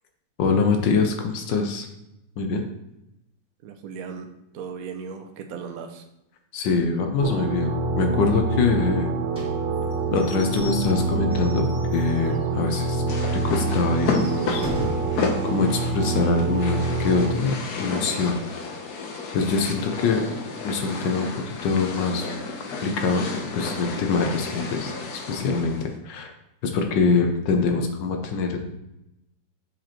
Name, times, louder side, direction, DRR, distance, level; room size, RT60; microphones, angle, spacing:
voice 1, 0.4-1.9 2.4-2.6 6.5-7.7 8.0-9.1 10.1-13.0 13.4-14.6 15.4-18.4 19.3-20.2 20.6-22.3 22.8-23.3 23.5-26.3 26.6-28.6, left 4 dB, 85° left, 4 dB, 1.4 m, -24 dB
voice 2, 3.6-4.3 4.5-6.0, right 6 dB, 65° right, 5 dB, 0.9 m, -36 dB
sound 1, 7.2-17.3, right 3 dB, 85° right, 1.3 m, -26 dB
Slam / Squeak / Wood, 9.3-12.5 12.9-13.0 13.3-13.4 13.9-15.2, left 2 dB, 5° right, 1.7 m, -37 dB
sound 2, 13.1-25.9, left 4 dB, 65° left, 1.2 m, -32 dB
7.3 x 5.1 x 2.9 m, 0.89 s
omnidirectional pair, 1.9 m